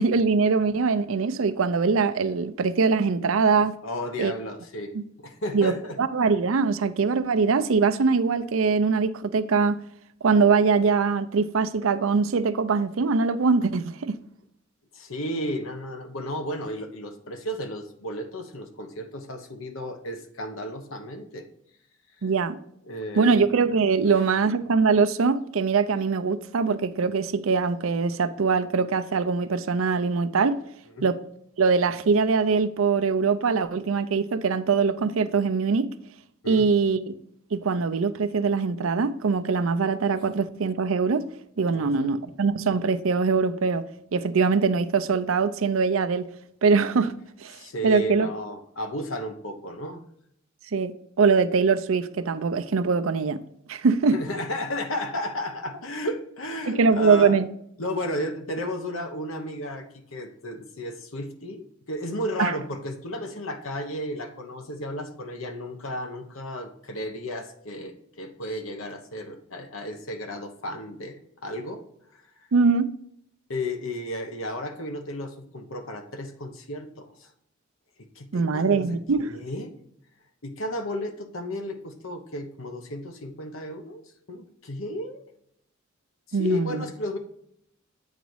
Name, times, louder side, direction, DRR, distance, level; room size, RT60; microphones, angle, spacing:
voice 1, 0.0-3.8 4.2-4.3 4.9-5.0 5.5-9.8 10.2-14.1 22.2-22.6 23.2-30.6 31.0-31.2 31.6-35.9 36.5-37.1 37.5-41.2 41.6-43.8 44.1-46.2 46.6-47.1 47.4-47.6 47.8-48.3 50.7-50.9 51.2-53.4 53.7-54.2 56.7-57.5 62.4-62.5 72.5-72.9 78.3-79.3 86.3-86.9, right 5 dB, 75° right, 0.5 m, -22 dB
voice 2, 3.8-6.0 14.9-21.5 22.9-23.4 31.0-31.1 36.4-36.7 41.7-42.1 47.5-50.0 54.1-57.4 57.8-71.8 72.1-72.2 73.5-77.3 78.1-79.7 80.4-84.0 84.3-85.2 86.3-87.2, left 1 dB, 80° left, 1.1 m, -33 dB
8.3 x 4.0 x 4.7 m
head